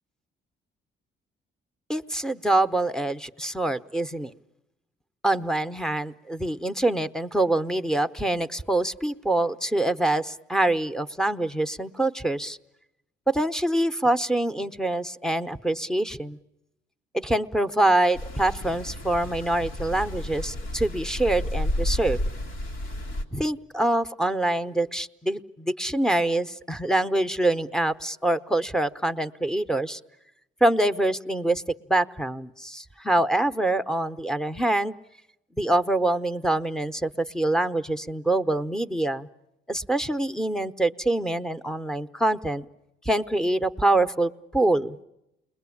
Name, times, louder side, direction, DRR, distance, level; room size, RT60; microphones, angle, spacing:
voice 1, 1.9-4.3 5.2-12.6 13.3-16.4 17.1-22.2 23.3-30.0 30.6-31.6 31.9-34.9 35.6-39.3 39.7-42.6 43.0-45.0, right 1 dB, 5° left, 10 dB, 0.9 m, -25 dB
sound 1, 18.1-23.2, left 1 dB, 90° left, 2.6 m, -31 dB
29.5 x 21.5 x 8.5 m, 0.90 s
cardioid pair, 90°, 20 cm